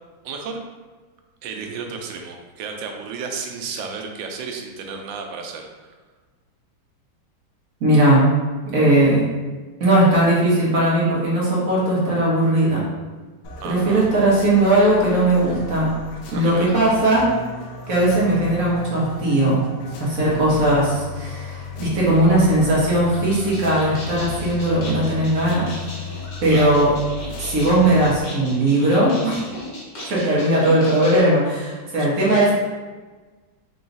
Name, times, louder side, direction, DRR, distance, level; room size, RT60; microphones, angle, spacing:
voice 1, 0.2-0.6 1.4-5.9 13.6-14.1 16.3-16.7 26.5-26.7 29.9-30.5 32.0-32.4, right 5 dB, 80° right, 3 dB, 1.3 m, -33 dB
voice 2, 7.8-8.3 8.7-9.3 9.8-12.9 13.6-15.9 16.3-17.3 17.9-19.6 20.0-25.7 26.4-26.9 27.4-29.4 30.1-32.5, right 1 dB, 55° right, -6 dB, 1.2 m, -18 dB
sound 1, 13.4-28.2, left 3 dB, 70° left, 1.1 m, -35 dB
sound 2, 23.2-31.2, left 1 dB, 50° left, 0.6 m, -38 dB
3.9 x 2.3 x 3.9 m, 1.3 s
omnidirectional pair, 2.1 m